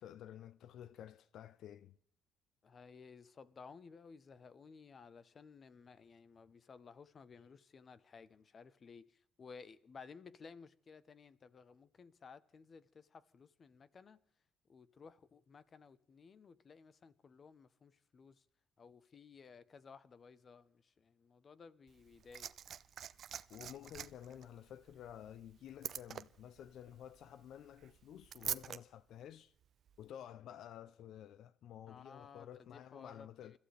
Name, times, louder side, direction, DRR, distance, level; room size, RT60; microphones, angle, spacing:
voice 1, 0.0-2.0 23.5-29.5 30.0-33.6, left 10 dB, 70° left, 0.5 m, -52 dB
voice 2, 2.6-14.2 14.7-18.4 18.8-22.5 31.9-33.6, left 5 dB, 35° left, 0.8 m, -57 dB
Liquid, 21.9-28.8 29.9-30.0, right 9 dB, 50° right, 0.6 m, -46 dB
29.5 x 14.0 x 3.4 m
cardioid pair, 155°, 0 cm